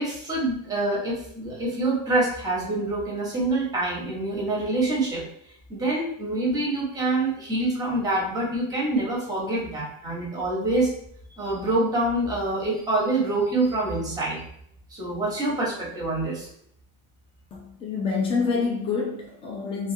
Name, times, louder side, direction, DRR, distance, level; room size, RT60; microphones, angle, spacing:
voice 1, 0.0-5.3 5.7-10.9 11.4-14.4 14.9-16.5, right 2 dB, 10° right, -4 dB, 0.7 m, -26 dB
voice 2, 17.5-19.9, left 5 dB, 15° left, -2 dB, 0.3 m, -27 dB
2.3 x 2.3 x 2.7 m, 0.67 s
cardioid pair, 155°, 40 cm